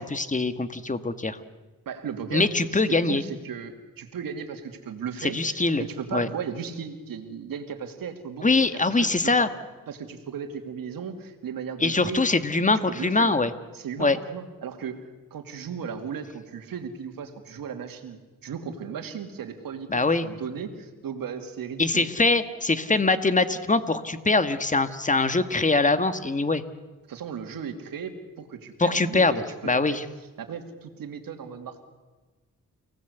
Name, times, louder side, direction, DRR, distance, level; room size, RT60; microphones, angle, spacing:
voice 1, 0.0-1.4 2.3-3.2 5.2-5.8 6.1-6.3 8.4-9.5 11.8-13.5 14.0-14.2 19.9-20.3 21.8-26.6 28.8-30.0, left 3 dB, 20° left, 11 dB, 1.8 m, -23 dB
voice 2, 1.9-9.5 9.9-12.2 12.9-13.4 13.7-22.1 27.1-30.0 30.4-31.8, right 7 dB, 85° right, 6 dB, 2.8 m, -36 dB
29.5 x 18.5 x 8.2 m, 1.3 s
cardioid pair, 75°, 34 cm